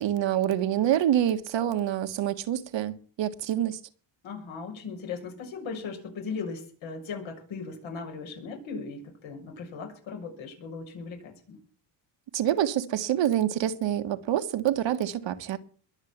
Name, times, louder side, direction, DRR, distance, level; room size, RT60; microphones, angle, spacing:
voice 1, 0.0-3.8 12.3-15.6, right 11 dB, 65° right, 1.6 m, -26 dB
voice 2, 4.2-11.6, left 5 dB, 70° left, 7.0 m, -38 dB
22.0 x 7.5 x 7.2 m
cardioid pair, 105°, 48 cm